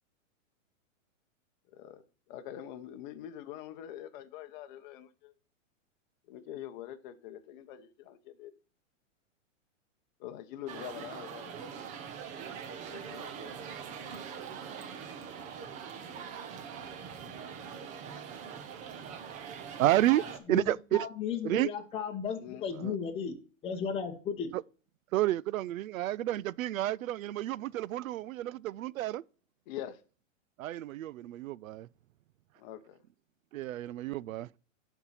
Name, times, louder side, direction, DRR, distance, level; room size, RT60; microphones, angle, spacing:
voice 1, 1.7-2.0 2.3-5.3 6.3-8.5 10.2-11.5 12.9-13.6 13.9-14.0 22.4-22.7 29.7-30.0 32.6-33.0, left 11 dB, 35° left, 0.8 m, -44 dB
sound 1, 10.7-20.4, right 7 dB, 20° right, 0.7 m, -43 dB
voice 2, 19.8-21.1 21.4-21.7 22.7-23.0 24.5-24.6 25.1-29.2 30.6-31.9 33.5-34.5, right 14 dB, 90° right, 0.5 m, -30 dB
voice 3, 20.9-23.3 23.6-24.5, left 6 dB, 15° left, 1.1 m, -35 dB
11.5 x 4.6 x 4.1 m
hypercardioid pair, 150°, 39 cm